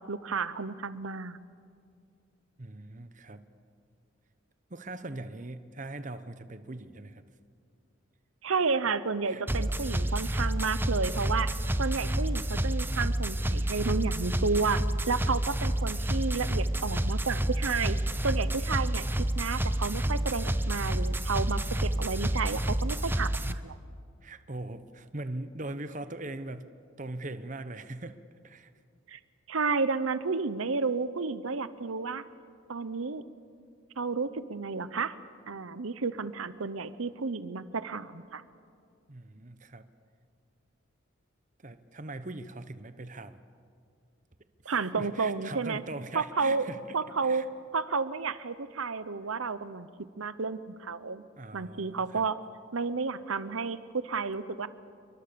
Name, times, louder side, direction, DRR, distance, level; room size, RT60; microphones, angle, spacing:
voice 1, 0.0-1.4 8.4-11.5 11.8-18.0 18.2-19.1 19.3-23.8 29.1-29.2 29.5-32.2 32.7-33.2 34.0-35.1 35.5-38.4 44.6-45.8 46.1-46.7 46.9-47.5 47.7-49.9 50.2-51.2 51.5-52.4 52.7-54.7, right 4 dB, 80° right, 14 dB, 0.9 m, -31 dB
voice 2, 2.6-3.4 4.7-7.2 9.2-9.4 24.2-26.7 27.0-28.2 28.4-28.7 39.1-39.9 41.6-43.4 44.6-47.0 47.2-47.5 51.4-52.3, right 2 dB, 35° right, 11 dB, 1.0 m, -41 dB
sound 1, 9.5-23.5, right 1 dB, 10° right, 0.6 m, -29 dB
29.0 x 23.5 x 6.9 m, 2.2 s
head